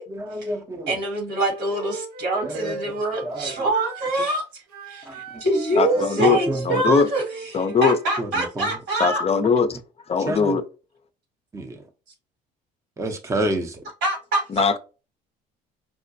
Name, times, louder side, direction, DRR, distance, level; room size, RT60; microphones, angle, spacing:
voice 1, 0.1-1.0 2.5-2.9 3.2-3.7 5.0-5.4 5.9-7.0 8.2-8.7 10.3-10.6 11.5-11.8 13.0-13.8, right 1 dB, 15° right, 0.6 m, -29 dB
voice 2, 0.9-9.2 14.0-14.4, right 2 dB, 65° right, 1.6 m, -25 dB
Wind instrument woodwind instrument, 1.3-4.3 4.7-8.1, right 3 dB, 90° right, 0.8 m, -39 dB
voice 3, 5.8-6.4 6.7-7.1 7.5-8.0 9.0-9.7 10.1-10.6 14.5-14.8, left 5 dB, 35° left, 0.4 m, -20 dB
4.7 x 2.1 x 2.5 m
supercardioid pair, 70°, 19 cm